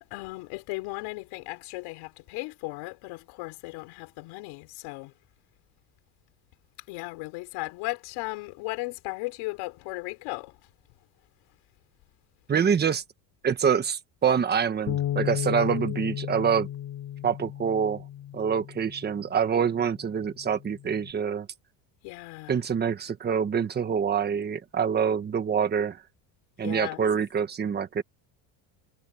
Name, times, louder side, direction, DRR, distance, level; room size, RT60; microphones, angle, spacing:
voice 1, 0.1-5.1 6.9-10.6 22.0-22.6 26.6-27.0, left 24 dB, 75° left, 4.0 m, -36 dB
voice 2, 12.5-13.0 13.4-16.7 17.2-18.0 18.3-21.5 22.5-26.0 26.6-28.0, right 7 dB, 20° right, 1.4 m, -26 dB
Bass guitar, 14.9-19.3 19.9-21.1, left 11 dB, 40° left, 6.9 m, -34 dB
cardioid pair, 170°, 48 cm